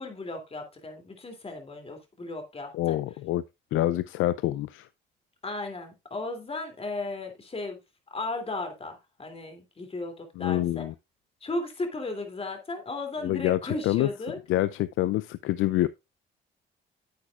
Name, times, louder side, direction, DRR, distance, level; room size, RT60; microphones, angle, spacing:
voice 1, 0.0-3.0 5.4-7.8 8.1-10.9 11.4-14.4, left 2 dB, 30° left, 2.8 m, -35 dB
voice 2, 2.7-3.4 3.7-4.9 10.4-10.9 13.2-14.1 14.5-15.9, left 15 dB, 85° left, 0.4 m, -26 dB
9.6 x 8.5 x 2.4 m
cardioid pair, 90°, 20 cm